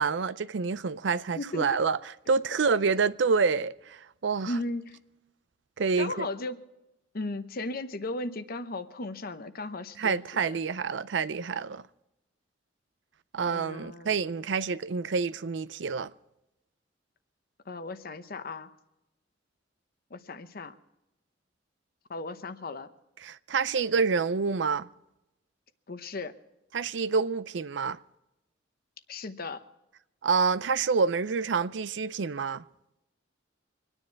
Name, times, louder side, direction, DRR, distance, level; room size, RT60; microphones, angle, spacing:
voice 1, 0.0-2.0 2.3-4.5 5.8-6.3 10.0-11.8 13.3-16.1 23.2-24.9 26.7-28.0 30.2-32.6, right 5 dB, 70° right, 0.5 m, -27 dB
voice 2, 1.4-1.7 4.4-5.0 6.0-6.6 7.1-10.2 10.4-10.5 13.5-14.1 17.7-18.7 20.1-20.7 22.1-22.9 25.9-26.4 29.1-29.6, left 2 dB, 55° left, 0.9 m, -36 dB
25.0 x 9.9 x 4.6 m
head